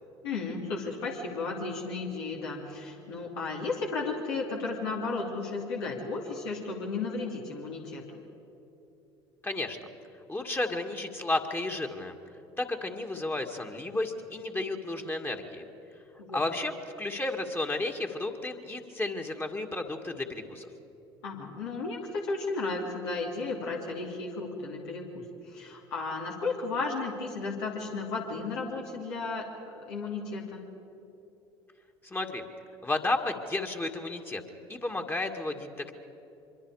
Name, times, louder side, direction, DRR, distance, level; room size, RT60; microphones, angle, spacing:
voice 1, 0.2-8.2 16.2-16.4 21.2-29.5 29.7-30.6, left 3 dB, 75° left, -2 dB, 2.8 m, -34 dB
voice 2, 9.4-9.8 10.3-12.2 12.6-15.7 16.3-20.7 32.0-32.5 32.8-34.4 34.7-35.9, left 2 dB, 15° left, 3 dB, 2.1 m, -32 dB
24.5 x 23.5 x 4.9 m, 3.0 s
hypercardioid pair, 65°, 13 cm